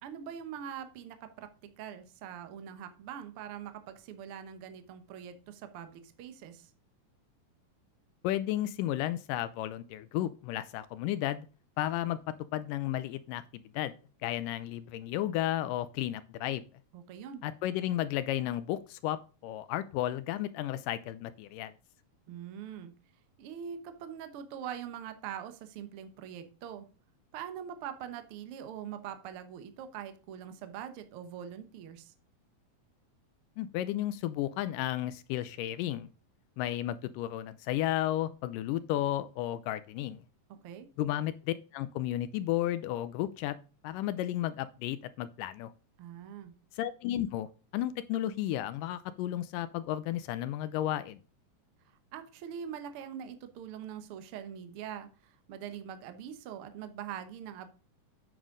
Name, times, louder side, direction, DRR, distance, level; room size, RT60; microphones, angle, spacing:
voice 1, 0.0-6.7 16.9-17.4 22.3-22.9 23.4-26.9 27.3-32.1 40.5-40.9 46.0-46.5 51.9-57.7, right 9 dB, 80° right, 9 dB, 1.2 m, -43 dB
voice 2, 8.2-11.5 11.8-12.2 12.5-13.4 13.7-14.0 14.2-16.6 17.4-21.7 33.6-36.1 36.6-40.2 41.0-43.6 43.8-45.7 46.8-47.5 47.7-51.2, left 13 dB, 80° left, 14 dB, 2.0 m, -33 dB
9.1 x 6.2 x 3.7 m, 0.36 s
omnidirectional pair, 4.1 m